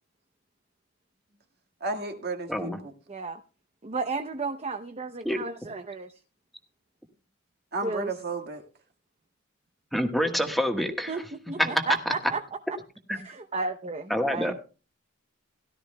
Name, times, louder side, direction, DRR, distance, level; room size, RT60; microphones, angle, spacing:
voice 1, 1.8-2.9 7.7-8.6, right 3 dB, 50° right, 4 dB, 1.7 m, -33 dB
voice 2, 3.1-3.4 3.8-6.1 7.8-8.1 11.1-11.2 11.5-12.4 13.1-14.5, right 4 dB, 30° right, 7 dB, 0.7 m, -33 dB
voice 3, 9.9-11.2 11.6-11.7 13.1-13.2 14.1-14.5, equal, ahead, 4 dB, 1.3 m, -26 dB
17.0 x 12.5 x 2.2 m, 0.35 s
head